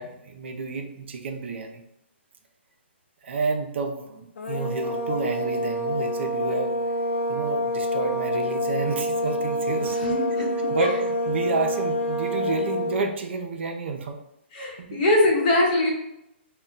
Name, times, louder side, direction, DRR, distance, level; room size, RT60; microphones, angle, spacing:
voice 1, 0.0-1.8 3.2-6.7 7.3-14.2 14.8-15.0, right 4 dB, 65° right, 4 dB, 0.4 m, -30 dB
sound 1, 4.4-13.1, equal, 80° left, 0.4 m, -27 dB
voice 2, 9.8-11.0 14.5-15.9, left 1 dB, 40° left, -2 dB, 0.8 m, -23 dB
2.2 x 2.1 x 3.8 m, 0.83 s
hypercardioid pair, 145°, 7 cm